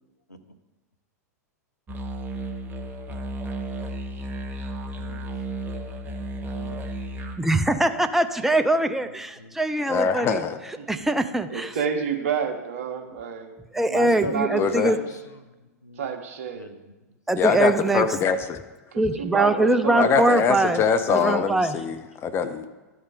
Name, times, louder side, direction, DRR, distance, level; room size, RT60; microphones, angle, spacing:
sound 1, 1.9-7.4, right 1 dB, 20° right, 1.0 m, -33 dB
voice 1, 3.8-4.3 4.9-5.3 6.5-6.8 9.4-9.6 13.0-13.2 13.9-16.2 16.5-17.0, left 1 dB, 90° left, 0.8 m, -40 dB
voice 2, 7.4-10.4 10.9-11.8 13.7-15.0 17.3-18.1 19.0-20.8 21.1-21.8, right 2 dB, 5° right, 0.4 m, -22 dB
voice 3, 9.9-10.6 14.6-14.9 17.4-18.6 19.9-22.6, left 6 dB, 25° left, 0.8 m, -23 dB
voice 4, 11.5-13.5 13.9-15.0 16.0-16.7 18.9-20.4 20.6-21.5, right 7 dB, 55° right, 1.1 m, -30 dB
12.5 x 4.3 x 5.0 m
figure-of-eight pair, 95°, 9 cm